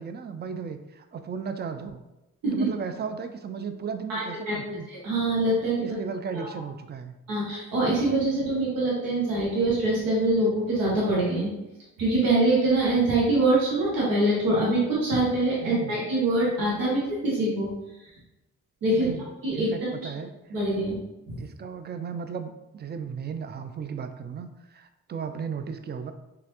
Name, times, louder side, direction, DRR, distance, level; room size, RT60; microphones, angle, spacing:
voice 1, 0.0-2.0 2.5-4.9 5.8-7.2 15.6-16.0 18.9-19.3 19.5-20.3 21.4-26.1, right 6 dB, 30° right, 8 dB, 0.4 m, -35 dB
voice 2, 4.1-4.6 4.9-5.8 6.3-6.6 7.3-11.5 12.0-17.7 18.8-19.1 19.4-20.0 20.5-21.0 21.3-21.4, right 2 dB, 80° right, -5 dB, 1.0 m, -24 dB
3.0 x 2.4 x 2.9 m, 0.96 s
supercardioid pair, 50°, 35 cm